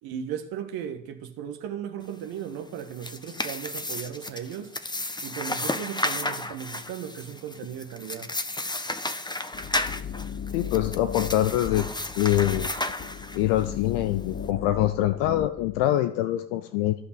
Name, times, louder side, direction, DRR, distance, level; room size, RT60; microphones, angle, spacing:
voice 1, 0.0-4.7 5.2-8.3, right 9 dB, 70° right, 1.6 m, -36 dB
sound 1, 2.7-13.6, left 2 dB, 10° left, 1.4 m, -33 dB
sound 2, 9.5-15.9, left 7 dB, 35° left, 1.2 m, -36 dB
voice 2, 10.5-11.9 12.2-12.7 13.3-17.0, left 13 dB, 75° left, 0.8 m, -24 dB
17.0 x 6.0 x 7.9 m
hypercardioid pair, 40°, 38 cm